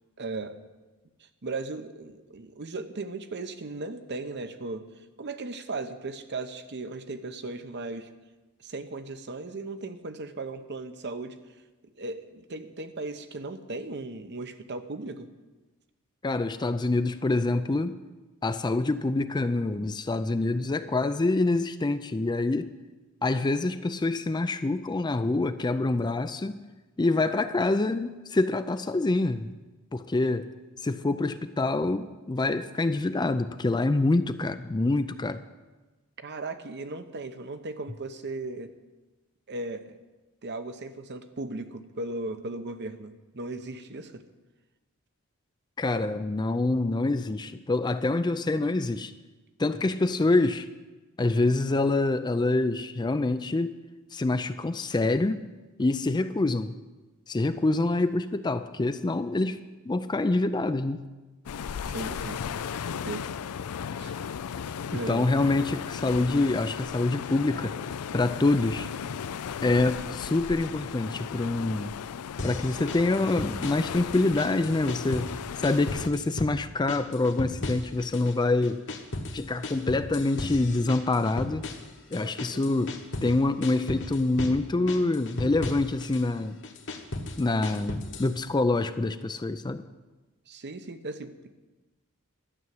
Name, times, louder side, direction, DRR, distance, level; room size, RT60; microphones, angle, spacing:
voice 1, 0.2-0.6 1.4-4.8 5.2-8.1 8.6-11.4 12.0-15.3 36.2-38.7 39.5-40.0 40.4-44.3 61.9-62.4 62.9-63.3 64.0-64.1 64.9-65.2 82.2-82.6 90.5-91.5, right 2 dB, 50° right, 9 dB, 0.8 m, -37 dB
voice 2, 16.2-18.0 18.4-22.7 23.2-26.6 27.0-29.5 29.9-30.5 30.8-35.4 45.8-49.1 49.6-50.7 51.2-53.8 54.1-55.4 55.8-56.7 57.3-59.6 59.9-61.0 64.9-67.7 68.1-68.9 69.6-71.9 72.4-78.8 79.3-81.6 82.1-82.9 83.2-86.6 87.4-89.8, left 2 dB, 20° left, 11 dB, 0.4 m, -26 dB
sound 1, 61.5-76.1, left 7 dB, 80° left, 0.4 m, -36 dB
sound 2, 72.4-73.9 74.1-75.4 75.6-76.6 76.9-78.3 78.6-83.3 83.6-84.6 84.9-86.2 86.6-88.3, left 2 dB, 55° left, 1.4 m, -36 dB
12.5 x 7.1 x 9.4 m, 1.2 s
head